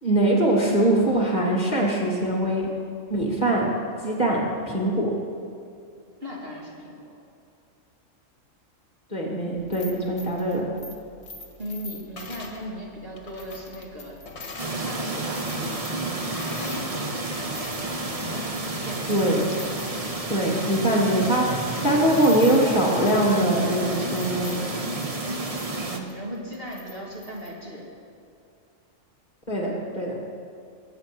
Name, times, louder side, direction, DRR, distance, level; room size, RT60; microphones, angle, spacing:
voice 1, 0.0-2.7 3.1-3.7 4.0-5.1 9.1-10.7 19.1-19.5 20.3-24.6 29.5-30.1, right 1 dB, 35° left, -2 dB, 2.6 m, -22 dB
voice 2, 6.2-7.1 11.6-14.1 14.8-15.5 16.6-17.1 18.8-19.3 25.8-27.9, equal, 45° right, -3 dB, 2.9 m, -37 dB
sound 1, 9.6-14.8 15.2-16.9 17.3-27.5, left 3 dB, 55° left, 2.0 m, -44 dB
sound 2, 14.6-26.0, right 2 dB, 30° right, 1.2 m, -30 dB
21.0 x 8.9 x 6.2 m, 2.5 s
omnidirectional pair, 1.4 m